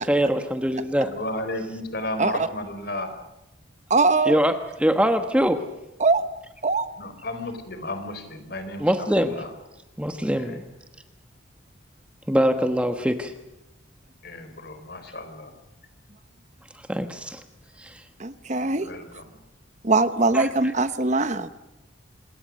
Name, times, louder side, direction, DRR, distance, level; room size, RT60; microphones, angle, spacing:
voice 1, 0.0-1.1 4.3-4.5 4.8-5.6 8.8-9.4 10.0-10.6 12.3-13.3 16.9-17.4 17.8-18.0 20.3-20.5, equal, 5° right, 7 dB, 1.2 m, -23 dB
voice 2, 1.0-3.1 7.0-9.5 10.3-10.6 14.2-15.5 18.7-19.4, left 1 dB, 55° left, 9 dB, 4.4 m, -34 dB
voice 3, 3.9-4.4 6.0-6.2 6.6-6.9 18.2-18.9 19.8-21.5, right 3 dB, 35° right, 12 dB, 0.9 m, -21 dB
27.0 x 21.5 x 6.4 m, 0.97 s
head